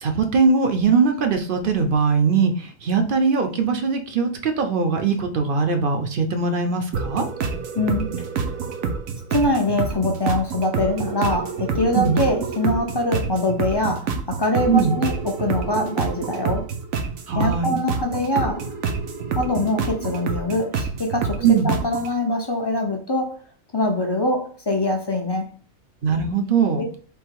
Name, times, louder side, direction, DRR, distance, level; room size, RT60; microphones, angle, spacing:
voice 1, 0.0-7.3 11.9-12.2 14.7-15.0 17.3-17.7 21.4-21.7 26.0-26.9, right 5 dB, 50° right, 0.7 m, -20 dB
sound 1, 6.9-22.1, right 5 dB, 80° right, 1.1 m, -27 dB
voice 2, 7.7-8.3 9.3-16.7 17.4-18.7 19.3-23.4 23.7-25.6 26.8-26.9, left 1 dB, 40° left, 0.3 m, -24 dB
3.6 x 2.8 x 4.5 m
omnidirectional pair, 1.4 m